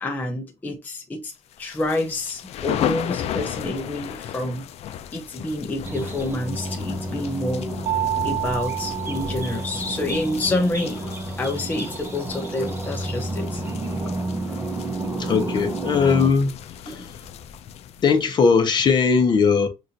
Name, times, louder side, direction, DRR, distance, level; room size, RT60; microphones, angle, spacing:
voice 1, 0.0-1.3 1.6-4.7 5.1-7.7 8.2-11.0 11.4-13.6 14.5-14.6 16.9-17.0, left 2 dB, 15° left, 0.6 m, -28 dB
sound 1, 1.5-18.5, left 10 dB, 60° left, 0.5 m, -35 dB
sound 2, 5.8-16.3, right 1 dB, 20° right, 0.8 m, -30 dB
Mallet percussion, 7.9-10.4, right 12 dB, 45° right, 0.6 m, -29 dB
voice 2, 15.2-16.6 16.9-17.2 18.0-19.7, left 5 dB, 40° left, 0.9 m, -19 dB
6.0 x 2.5 x 2.7 m
cardioid pair, 145°, 12 cm